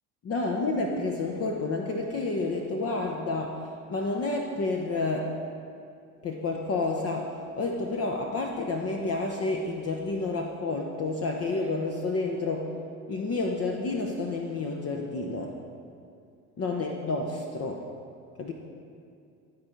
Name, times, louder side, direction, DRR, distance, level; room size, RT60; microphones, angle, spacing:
voice 1, 0.2-5.4 6.2-12.7 13.1-15.5 16.6-17.8 18.4-18.5, left 3 dB, 35° left, 1 dB, 0.8 m, -30 dB
12.0 x 4.4 x 5.2 m, 2.4 s
hypercardioid pair, 70°, 44 cm